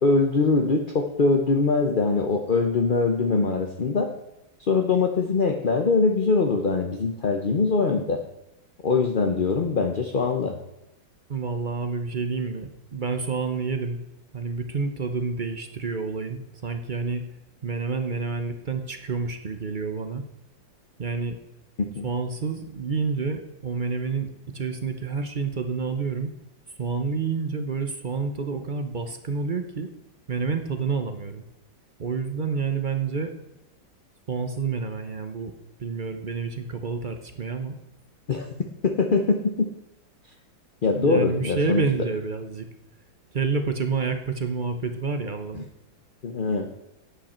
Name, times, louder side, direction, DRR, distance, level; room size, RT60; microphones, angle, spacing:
voice 1, 0.0-4.1 4.7-8.2 8.8-10.5 21.8-22.1 38.3-38.5 38.8-39.7 40.8-41.8 45.5-45.6 46.2-46.7, left 4 dB, 40° left, 3 dB, 0.7 m, -22 dB
voice 2, 11.3-14.0 14.3-17.2 17.6-20.2 21.0-21.4 22.0-26.3 26.8-29.9 30.3-31.4 32.0-33.3 34.3-35.5 35.8-37.8 40.9-42.7 43.3-45.7, right 4 dB, 45° right, 7 dB, 0.6 m, -29 dB
12.5 x 9.0 x 4.4 m, 0.89 s
omnidirectional pair, 2.1 m